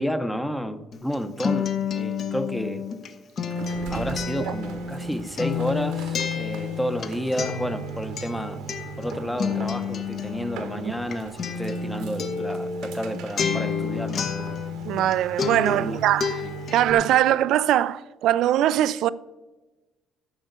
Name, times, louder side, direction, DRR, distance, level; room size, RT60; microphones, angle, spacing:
voice 1, 0.0-2.8 3.9-8.6 9.0-14.3 15.7-16.0 16.4-16.5, equal, 5° left, 0.8 m, -31 dB
Acoustic guitar, 0.9-15.1 15.4-16.9, left 5 dB, 45° left, 1.1 m, -30 dB
sound 1, 3.5-17.2, right 5 dB, 85° right, 1.4 m, -41 dB
voice 2, 14.9-16.4 16.7-19.1, right 12 dB, 70° right, 0.4 m, -21 dB
13.0 x 5.6 x 8.2 m
cardioid pair, 125°, 0 cm